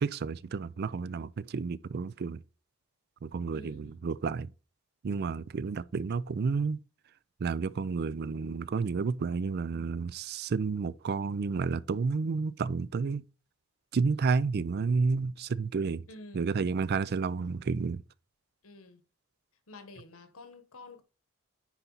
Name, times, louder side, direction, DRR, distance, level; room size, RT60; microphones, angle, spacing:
voice 1, 0.0-2.4 3.2-4.5 5.0-6.8 7.4-13.2 13.9-16.0 16.3-18.0, right 4 dB, 50° right, 0.4 m, -31 dB
voice 2, 3.5-4.0 16.1-16.6 18.6-19.0 19.7-21.0, left 2 dB, 90° left, 1.4 m, -49 dB
10.0 x 4.1 x 4.0 m
head